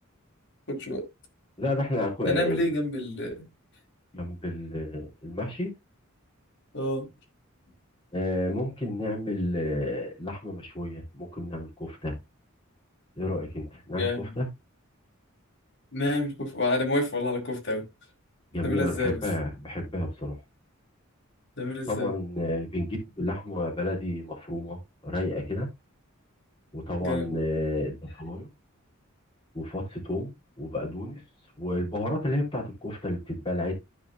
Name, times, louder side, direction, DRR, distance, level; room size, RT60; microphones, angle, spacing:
voice 1, 0.7-1.1 2.2-3.4 6.7-7.0 13.9-14.3 15.9-17.8 18.6-19.2 21.6-22.1 27.0-27.3, left 2 dB, 55° left, 4.7 m, -28 dB
voice 2, 1.6-2.6 4.1-5.7 8.1-12.2 13.2-14.5 18.5-20.3 21.9-24.8 25.0-25.7 26.7-28.5 29.5-31.2 31.6-33.8, left 1 dB, 25° left, 3.9 m, -31 dB
15.0 x 5.3 x 2.6 m
head